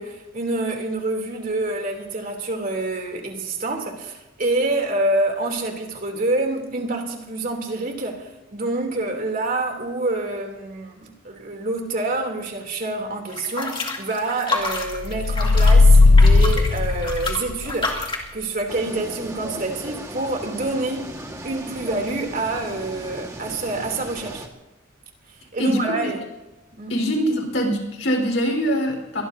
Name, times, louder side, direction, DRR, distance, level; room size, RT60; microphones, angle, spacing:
voice 1, 0.0-18.1 18.3-24.4 25.3-26.2 26.7-26.9, right 2 dB, 45° right, 3.1 m, -27 dB
sound 1, 13.3-18.3, left 3 dB, 25° left, 2.8 m, -29 dB
sound 2, 15.1-17.7, left 3 dB, 50° left, 0.4 m, -14 dB
sound 3, 18.7-24.5, right 1 dB, 15° right, 1.7 m, -37 dB
voice 2, 25.6-26.2 26.9-29.2, equal, 65° left, 4.6 m, -23 dB
23.0 x 21.5 x 2.8 m
head